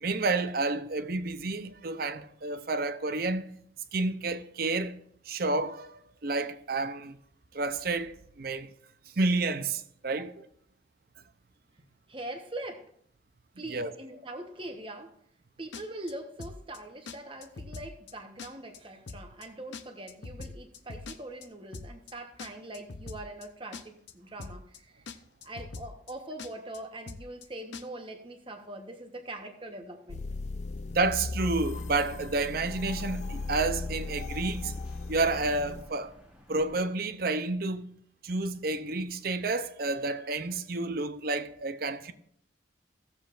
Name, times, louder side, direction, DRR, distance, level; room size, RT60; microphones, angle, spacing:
voice 1, 0.0-3.6 3.9-7.2 7.5-8.7 9.2-10.4 13.7-13.9 30.9-34.7 35.1-36.1 36.5-37.9 38.2-42.1, right 3 dB, 50° right, 0.6 m, -30 dB
voice 2, 12.1-12.9 13.6-15.2 15.6-25.1 25.4-30.2, right 1 dB, 25° right, 1.0 m, -42 dB
sound 1, 15.7-16.1 16.4-16.8 17.1-17.2 17.4-18.1 18.4-18.8 19.1-19.5 19.7-21.5 21.7-22.1 22.4-23.5 23.7-24.1 24.4-24.8 25.1-25.2 25.4-26.1 26.4-26.8 27.1-27.5 27.7-27.8, left 4 dB, 70° left, 0.7 m, -42 dB
sound 2, 30.1-35.8, left 3 dB, 35° left, 0.4 m, -37 dB
sound 3, 31.5-36.8, equal, 5° right, 1.5 m, -53 dB
16.5 x 7.3 x 2.5 m
head